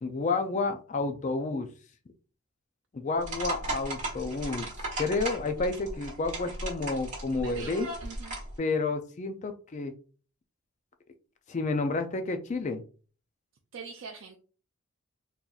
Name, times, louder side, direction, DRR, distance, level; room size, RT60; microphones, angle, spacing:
voice 1, 0.0-1.7 2.9-4.7 5.0-7.9 8.6-9.9 11.5-12.8, left 3 dB, 35° left, 7 dB, 0.4 m, -30 dB
sound 1, 3.2-8.5, right 1 dB, 35° right, 1.2 m, -36 dB
voice 2, 7.3-8.4 13.7-14.4, right 5 dB, 60° right, 1 dB, 0.5 m, -43 dB
3.8 x 2.8 x 2.4 m, 0.38 s
head